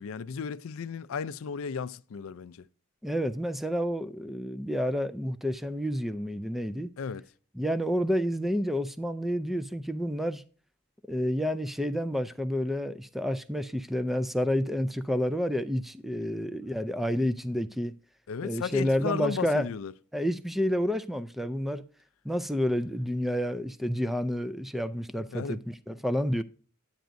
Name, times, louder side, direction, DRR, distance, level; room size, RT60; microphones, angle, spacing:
voice 1, 0.0-2.7 7.0-7.3 18.3-19.9 25.3-25.6, left 5 dB, 65° left, 0.4 m, -34 dB
voice 2, 3.0-6.9 7.5-10.4 11.1-17.9 18.4-19.7 20.1-21.8 22.2-26.4, equal, ahead, 0.3 m, -29 dB
10.5 x 9.1 x 2.6 m
head